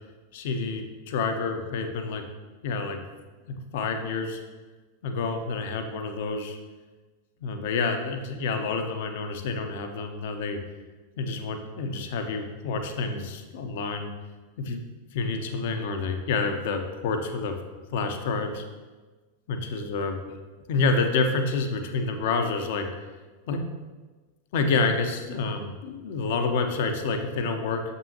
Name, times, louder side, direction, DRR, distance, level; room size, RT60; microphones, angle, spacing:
voice 1, 0.3-2.3 2.6-3.0 3.5-4.4 5.0-6.6 7.4-10.6 11.2-14.1 14.6-14.8 15.1-17.5 17.9-18.6 19.5-20.4 20.7-23.0 23.5-23.6 24.5-27.8, left 4 dB, 50° left, 6 dB, 0.6 m, -28 dB
6.9 x 5.4 x 2.8 m, 1.3 s
figure-of-eight pair, 90°, 0 cm